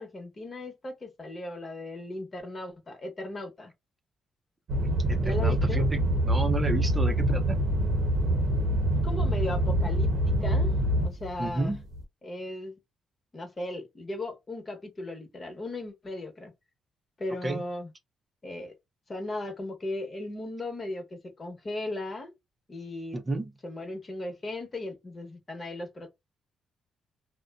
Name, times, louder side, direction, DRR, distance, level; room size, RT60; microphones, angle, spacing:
voice 1, 0.0-3.7 5.2-5.8 9.0-10.7 11.0-11.8 12.2-12.8 13.3-16.5 17.2-17.9 18.4-18.7 19.1-22.3 22.7-23.2 23.6-26.1, left 2 dB, 35° left, 1.2 m, -37 dB
sound 1, 4.7-12.0, right 1 dB, 65° right, 0.8 m, -25 dB
voice 2, 5.1-7.6 11.4-11.8 17.4-17.6 23.1-23.5, right 2 dB, 25° right, 0.6 m, -31 dB
2.4 x 2.2 x 2.3 m
supercardioid pair, 65°, 0 cm